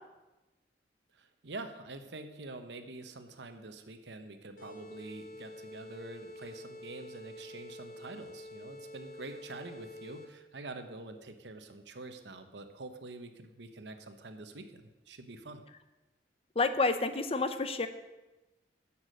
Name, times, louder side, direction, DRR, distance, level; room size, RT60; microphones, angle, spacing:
voice 1, 1.1-15.6, right 2 dB, 80° right, 8 dB, 1.0 m, -46 dB
sound 1, 4.6-10.5, left 1 dB, 50° left, 1.3 m, -48 dB
voice 2, 16.6-17.9, left 3 dB, 35° left, 10 dB, 0.7 m, -29 dB
11.0 x 7.2 x 6.4 m, 1.1 s
head